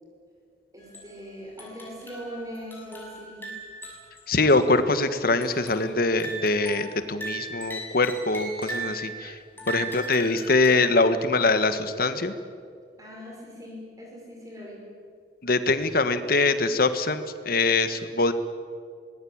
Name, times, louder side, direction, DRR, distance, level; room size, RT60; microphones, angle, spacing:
voice 1, 0.7-3.5 9.5-9.8 13.0-14.9, equal, 20° right, -2 dB, 6.0 m, -41 dB
sound 1, 0.8-1.1 1.6-4.2 4.5-4.6 5.4-5.9 6.2-9.1 9.6-11.0, right 3 dB, 10° left, 6.3 m, -38 dB
voice 2, 4.3-9.4 9.7-12.3 15.4-18.3, left 3 dB, 55° left, 10 dB, 1.6 m, -23 dB
25.5 x 20.5 x 8.9 m, 2.2 s
head